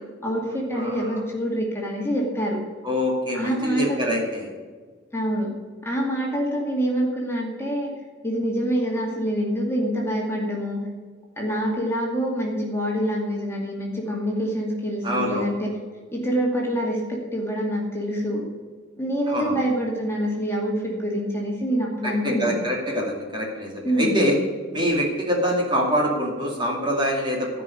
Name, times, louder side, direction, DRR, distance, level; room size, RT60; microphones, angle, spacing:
voice 1, 0.2-2.6 3.3-4.0 5.1-5.5 5.8-7.9 8.2-10.8 11.4-15.7 16.1-18.5 19.0-22.6 23.8-24.3, equal, 15° left, -2 dB, 2.4 m, -26 dB
voice 2, 0.7-1.2 2.8-4.5 15.0-15.5 19.3-19.6 22.0-24.4 24.7-27.5, equal, 25° right, -2 dB, 2.5 m, -25 dB
14.5 x 5.4 x 9.8 m, 1.5 s
head